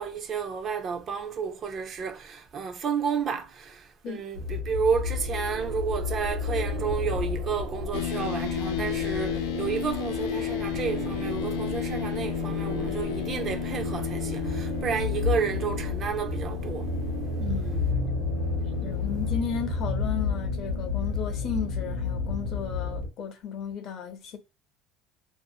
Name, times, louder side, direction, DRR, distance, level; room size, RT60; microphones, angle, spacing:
voice 1, 0.0-16.9, right 6 dB, 35° right, 0.4 m, -31 dB
sound 1, 4.3-23.1, left 3 dB, 75° right, 0.9 m, -31 dB
sound 2, 7.9-23.0, left 13 dB, 85° left, 0.3 m, -34 dB
voice 2, 17.4-17.9 18.8-24.4, left 7 dB, 50° left, 0.6 m, -34 dB
2.5 x 2.0 x 2.6 m
cardioid pair, 140°, 0 cm